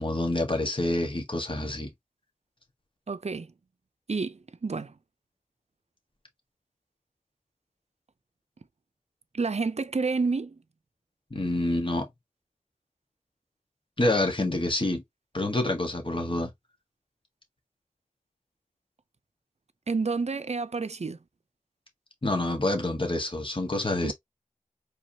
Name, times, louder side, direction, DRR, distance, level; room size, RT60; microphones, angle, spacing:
voice 1, 0.0-1.9 11.3-12.1 14.0-15.0 15.3-16.5 22.2-24.1, left 1 dB, 40° left, 1.6 m, -27 dB
voice 2, 3.1-3.5 4.1-4.9 9.3-10.6 19.9-21.2 24.0-24.1, right 4 dB, 50° right, 0.6 m, -29 dB
4.7 x 3.4 x 2.8 m
wide cardioid pair, 45°, 14 cm